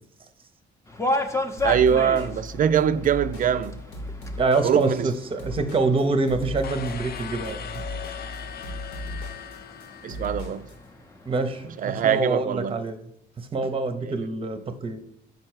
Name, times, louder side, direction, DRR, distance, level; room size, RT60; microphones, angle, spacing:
sound 1, 0.9-12.3, left 1 dB, 15° left, 0.7 m, -35 dB
sound 2, 1.6-10.8, left 1 dB, 80° left, 1.5 m, -37 dB
voice 1, 1.6-3.8 4.6-5.1 10.0-10.7 11.8-12.8 14.0-14.2, right 8 dB, 45° right, 0.4 m, -23 dB
voice 2, 4.4-7.6 11.3-13.0 13.4-15.0, right 3 dB, 30° right, 0.7 m, -25 dB
sound 3, 6.6-10.8, left 8 dB, 50° left, 0.5 m, -39 dB
5.4 x 4.5 x 4.5 m
cardioid pair, 90°, 20 cm